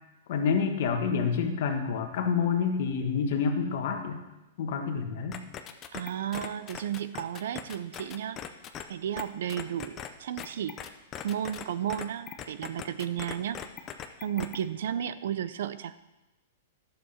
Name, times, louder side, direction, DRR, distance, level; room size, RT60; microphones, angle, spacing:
voice 1, 0.3-4.2 4.6-5.4, left 6 dB, 60° left, 4 dB, 1.3 m, -28 dB
sound 1, 5.3-8.8 9.2-9.3 9.5-10.1 10.4-11.6 11.9-14.6, left 10 dB, 25° left, 0.6 m, -39 dB
voice 2, 5.9-8.4 8.9-10.8 11.2-13.6 14.2-16.0, right 10 dB, 70° right, 14 dB, 0.5 m, -33 dB
11.0 x 7.0 x 4.3 m, 1.0 s
hypercardioid pair, 145°, 0 cm